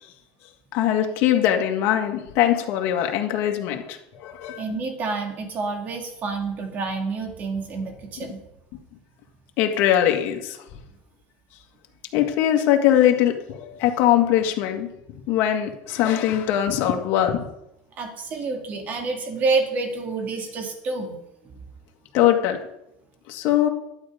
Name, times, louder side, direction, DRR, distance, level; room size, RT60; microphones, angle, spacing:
voice 1, 0.7-4.6 9.6-10.6 12.1-14.9 15.3-17.4 22.1-22.6 23.3-23.7, left 11 dB, 60° left, 3 dB, 1.9 m, -21 dB
voice 2, 4.6-8.4 18.0-21.2, right 3 dB, 40° right, 3 dB, 2.6 m, -28 dB
12.0 x 9.1 x 5.1 m, 0.85 s
supercardioid pair, 125°, 4 cm